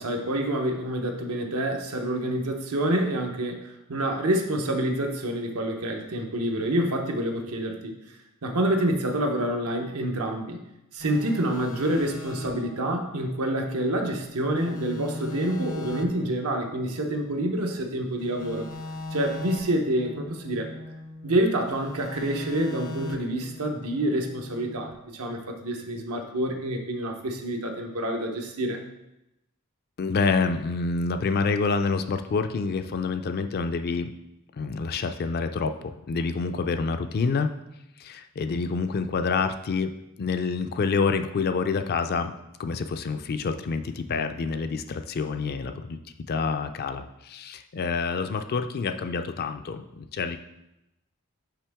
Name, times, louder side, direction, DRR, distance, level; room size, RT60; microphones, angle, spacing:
voice 1, 0.0-8.0 8.4-10.6 10.9-18.7 19.1-20.7 21.2-28.8, right 1 dB, 90° right, 3 dB, 0.9 m, -27 dB
sound 1, 11.0-14.3 14.6-17.8 18.2-21.4 21.7-24.9, left 2 dB, 65° left, 0.8 m, -40 dB
voice 2, 30.0-34.1 34.5-37.5 38.0-39.9 40.2-42.3 42.6-46.0 46.3-50.4, left 4 dB, 45° left, 8 dB, 0.4 m, -27 dB
5.8 x 5.2 x 3.5 m, 0.89 s
head